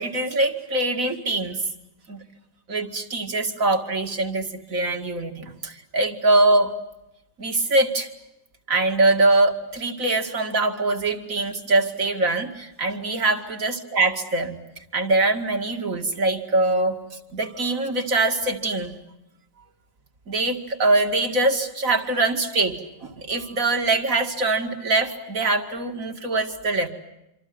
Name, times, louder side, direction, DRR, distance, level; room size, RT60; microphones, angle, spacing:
voice 1, 0.0-1.6 2.1-2.2 2.7-6.7 7.4-8.1 8.7-14.6 14.9-17.0 17.3-19.0 20.3-22.7 23.0-26.9, right 2 dB, 50° right, 5 dB, 2.6 m, -23 dB
27.0 x 26.0 x 7.8 m, 0.90 s
omnidirectional pair, 1.9 m